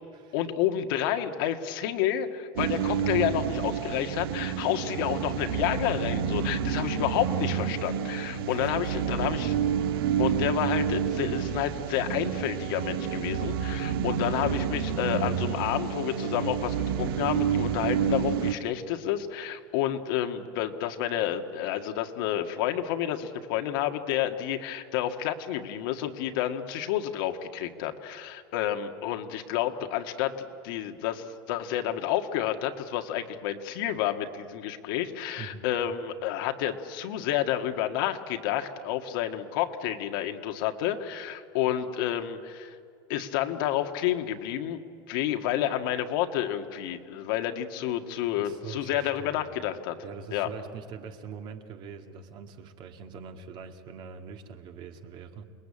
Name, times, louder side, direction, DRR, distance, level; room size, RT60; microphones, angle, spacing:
voice 1, 0.3-9.5 10.2-30.4 30.6-42.8 43.1-44.8 45.1-50.0 50.3-50.5, left 11 dB, 65° left, 6 dB, 1.8 m, -30 dB
sound 1, 2.6-18.5, right 8 dB, 80° right, 1.6 m, -29 dB
voice 2, 8.4-9.3 35.4-35.6 48.4-49.4 50.0-55.5, right 6 dB, 40° right, 5 dB, 2.1 m, -43 dB
28.0 x 20.5 x 8.6 m, 2.3 s
supercardioid pair, 150°, 12 cm